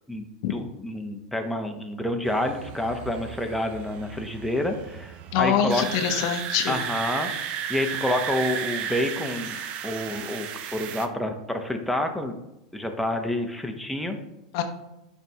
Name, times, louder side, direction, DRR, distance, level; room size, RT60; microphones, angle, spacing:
voice 1, 0.5-5.8 6.7-12.4 12.7-14.2, left 1 dB, ahead, 3 dB, 0.8 m, -28 dB
sound 1, 2.2-11.1, right 8 dB, 50° right, 0.5 m, -34 dB
voice 2, 5.3-6.8 14.5-14.6, left 9 dB, 60° left, 7 dB, 0.7 m, -24 dB
9.9 x 3.4 x 2.8 m, 0.92 s
hypercardioid pair, 105°, 3 cm